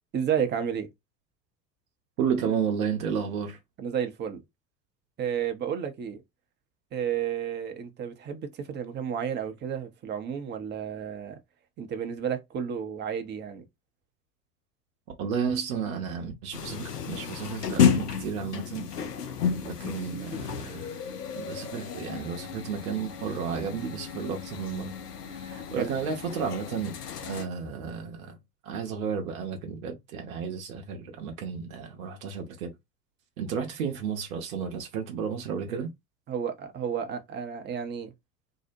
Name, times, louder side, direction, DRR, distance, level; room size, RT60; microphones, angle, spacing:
voice 1, 0.1-0.9 3.8-4.4 5.2-6.2 6.9-11.4 11.8-13.6 25.7-25.9 35.7-35.8 36.3-38.1, right 8 dB, 25° right, 0.5 m, -31 dB
voice 2, 2.2-3.6 15.2-18.9 19.6-21.0 21.3-24.9 25.3-27.0 27.2-28.4 28.6-32.7 33.4-35.9, right 6 dB, 65° right, 0.8 m, -32 dB
sound 1, 16.5-27.5, left 7 dB, 90° left, 0.5 m, -31 dB
2.7 x 2.0 x 2.6 m
figure-of-eight pair, 75°, 46 cm